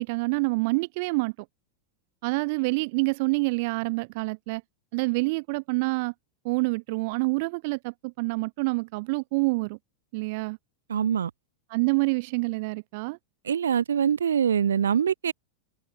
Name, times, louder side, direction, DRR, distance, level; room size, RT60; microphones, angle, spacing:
voice 1, 0.0-1.3 2.2-4.6 4.9-6.1 6.4-9.8 10.1-10.6 11.7-13.2, right 27 dB, 50° right, 1.5 m, -27 dB
voice 2, 10.9-11.3 13.4-15.3, right 8 dB, 65° right, 2.3 m, -24 dB
figure-of-eight pair, 90°, 0 cm